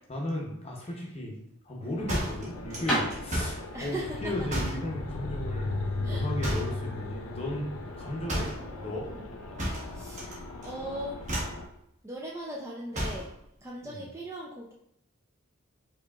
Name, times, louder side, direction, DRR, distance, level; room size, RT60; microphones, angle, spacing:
voice 1, 0.1-5.8 6.1-7.7 8.0-9.1 13.8-14.0, left 1 dB, 25° left, -1 dB, 0.7 m, -35 dB
sound 1, 1.2-6.6, right 1 dB, 5° left, 1.3 m, -35 dB
voice 2, 1.8-2.1 3.7-4.5 6.0-7.0 8.5-9.3 9.9-11.2 12.0-13.3 13.6-14.7, right 1 dB, 15° right, -3 dB, 0.3 m, -40 dB
sound 2, 2.0-11.7, left 2 dB, 90° left, 0.5 m, -37 dB
sound 3, 2.1-3.6 4.5-4.9 6.4-6.8 8.3-8.6 9.6-10.4 10.6-10.9 11.2-11.6 12.9-13.3, right 1 dB, 35° right, 1.0 m, -32 dB
4.8 x 2.8 x 2.3 m, 0.76 s
head